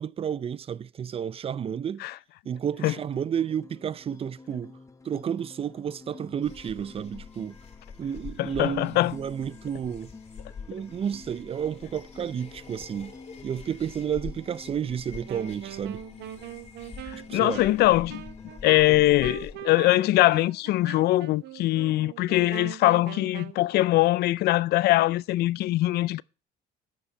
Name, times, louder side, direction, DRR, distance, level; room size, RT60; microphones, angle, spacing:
voice 1, 0.0-2.0 2.5-4.8 5.0-7.6 8.0-10.1 10.7-13.1 13.4-16.0 17.1-17.6 18.9-19.0, right 8 dB, 35° right, 0.4 m, -31 dB
sound 1, 2.9-18.9, left 3 dB, 20° left, 1.0 m, -50 dB
sound 2, 6.4-19.5, left 6 dB, 40° left, 2.5 m, -46 dB
voice 2, 8.4-9.1 17.1-18.2 18.6-26.2, left 17 dB, 75° left, 0.5 m, -22 dB
Wind instrument woodwind instrument, 15.3-23.6, right 12 dB, 80° right, 1.0 m, -41 dB
11.5 x 7.0 x 4.5 m
cardioid pair, 110°, 17 cm